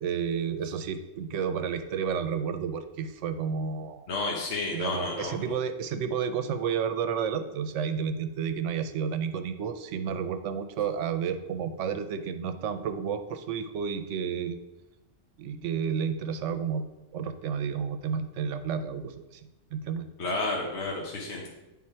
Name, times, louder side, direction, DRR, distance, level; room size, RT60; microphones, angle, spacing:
voice 1, 0.0-4.1 4.7-14.6 15.4-16.8 17.1-19.4 19.7-20.1, right 7 dB, 75° right, 10 dB, 0.9 m, -31 dB
voice 2, 4.1-5.3 20.2-21.5, left 3 dB, 60° left, -2 dB, 1.3 m, -31 dB
8.5 x 3.8 x 4.3 m, 0.98 s
omnidirectional pair, 1.3 m